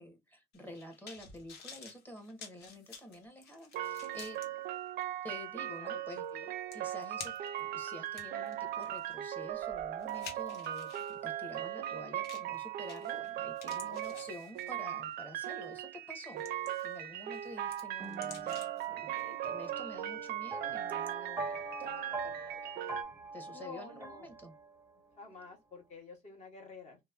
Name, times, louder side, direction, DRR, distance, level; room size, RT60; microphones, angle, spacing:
voice 1, 0.0-4.7 5.2-6.2 6.7-22.7 23.3-24.5, left 1 dB, 10° left, 0.9 m, -49 dB
sound 1, 0.5-4.5 5.0-5.1 6.3-6.4 6.7-7.6 8.1-11.2 12.2-12.6 12.9-13.3 13.6-14.9 15.4-15.6 16.1-17.0 17.3-18.9 19.2-19.3, left 5 dB, 70° left, 1.0 m, -51 dB
sound 2, 3.7-23.0, right 12 dB, 65° right, 0.4 m, -39 dB
voice 2, 13.6-14.3 23.5-24.3 25.2-27.0, left 4 dB, 45° left, 1.3 m, -50 dB
Ben Shewmaker - Haunting Chords, 18.0-25.0, right 3 dB, 15° right, 0.7 m, -44 dB
3.0 x 2.0 x 2.3 m
cardioid pair, 110°, 17 cm